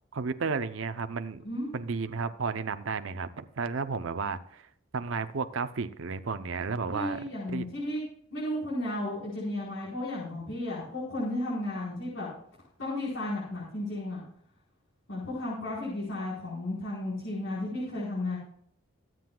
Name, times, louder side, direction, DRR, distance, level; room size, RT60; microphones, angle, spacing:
voice 1, 0.1-1.4 1.7-4.7 4.9-7.2 7.5-7.7, right 4 dB, 75° right, 10 dB, 0.6 m, -32 dB
voice 2, 6.9-8.0 8.3-12.3 12.8-14.2 15.1-18.4, left 1 dB, 65° left, -7 dB, 4.4 m, -33 dB
23.0 x 7.6 x 2.3 m, 0.66 s
head